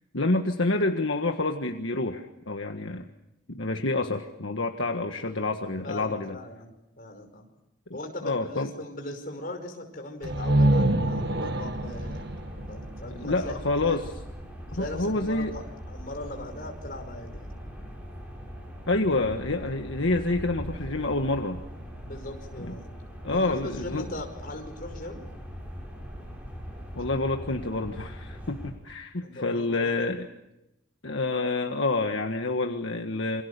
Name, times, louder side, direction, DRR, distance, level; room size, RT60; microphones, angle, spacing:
voice 1, 0.1-3.1 3.5-6.4 8.2-8.7 13.2-14.1 14.7-15.5 18.9-21.6 22.6-22.7 23.2-24.1 26.9-30.3 31.0-33.4, left 2 dB, 70° left, 4 dB, 1.6 m, -28 dB
voice 2, 5.8-7.5 7.9-12.3 12.7-14.0 14.7-17.5 22.0-22.9 23.3-25.2 29.2-30.1, left 1 dB, 45° left, 4 dB, 5.4 m, -39 dB
sound 1, 10.2-28.7, equal, 5° right, 7.7 m, -41 dB
sound 2, 10.2-14.0, right 1 dB, 55° right, 1.7 m, -26 dB
28.5 x 26.0 x 6.9 m, 0.89 s
head